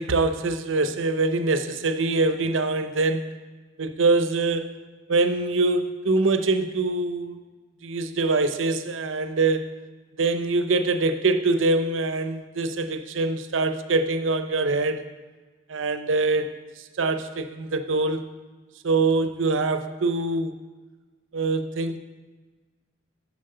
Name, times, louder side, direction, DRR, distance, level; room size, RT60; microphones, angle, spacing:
voice 1, 0.0-3.4 3.8-4.8 5.1-7.4 7.8-9.8 10.2-15.0 15.7-16.5 17.0-18.3 18.8-20.5 21.3-22.0, right 3 dB, 90° right, 9 dB, 0.7 m, -24 dB
7.5 x 7.3 x 6.7 m, 1.3 s
head